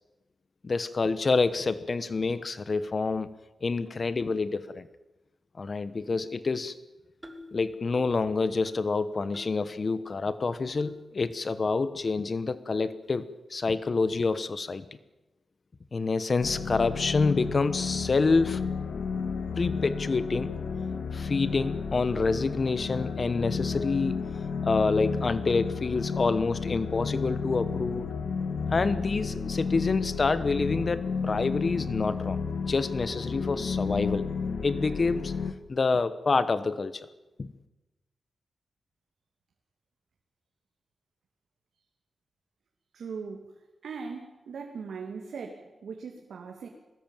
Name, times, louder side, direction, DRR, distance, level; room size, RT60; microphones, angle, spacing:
voice 1, 0.6-3.3 3.6-4.9 5.6-6.8 7.5-13.2 13.5-14.8 15.9-18.6 19.6-20.5 21.1-24.2 24.6-28.1 28.7-32.4 32.7-34.3 34.6-35.3 35.7-36.9 37.4-37.5, left 4 dB, 40° left, 14 dB, 1.1 m, -27 dB
sound 1, 7.2-7.5 7.9-8.2 8.7-8.9 9.3-9.6 10.1-10.2 10.8-10.9 11.5-11.6 12.3-12.4 13.0-13.2, left 1 dB, 10° right, 3.3 m, -47 dB
sound 2, 16.4-35.5, left 5 dB, 75° left, 1.8 m, -32 dB
voice 2, 42.9-46.7, right 5 dB, 90° right, 3 dB, 2.5 m, -40 dB
22.5 x 19.5 x 9.1 m, 1.1 s
wide cardioid pair, 115°, 0 cm